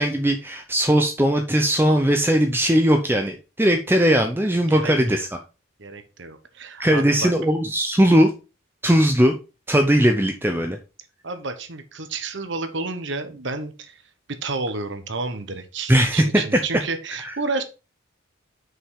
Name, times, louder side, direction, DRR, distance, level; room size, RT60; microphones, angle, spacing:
voice 1, 0.0-5.4 6.8-8.3 8.8-9.3 9.7-10.8 15.9-16.6 17.2-17.3, equal, 10° right, 4 dB, 0.6 m, -19 dB
voice 2, 4.7-5.3 5.8-7.3 11.2-13.9 14.4-17.6, right 3 dB, 55° right, 9 dB, 1.1 m, -30 dB
6.1 x 5.2 x 4.7 m, 0.30 s
head